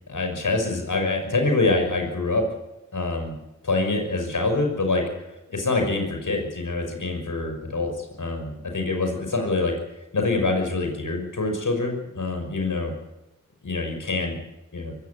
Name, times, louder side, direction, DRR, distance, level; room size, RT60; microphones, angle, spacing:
voice 1, 0.1-2.5 2.9-3.4 3.6-5.0 5.5-9.7 10.1-12.9 13.6-14.4 14.7-15.0, left 3 dB, 90° left, 4 dB, 6.0 m, -25 dB
24.0 x 16.0 x 8.4 m, 0.95 s
wide cardioid pair, 55°, 30 cm